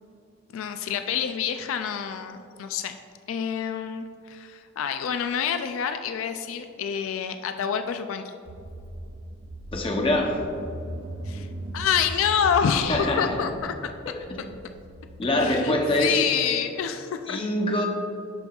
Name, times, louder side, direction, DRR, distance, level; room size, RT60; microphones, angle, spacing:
voice 1, 0.5-3.0 3.3-8.3 11.3-13.7 15.4-17.4, left 7 dB, 75° left, 7 dB, 0.3 m, -27 dB
Car / Engine, 8.5-15.5, right 1 dB, 80° right, 0.6 m, -38 dB
voice 2, 9.7-10.4 12.9-13.4 14.1-14.4 15.2-16.2 17.3-17.9, left 1 dB, 25° left, 2 dB, 0.7 m, -24 dB
11.5 x 5.3 x 2.3 m, 2.6 s
head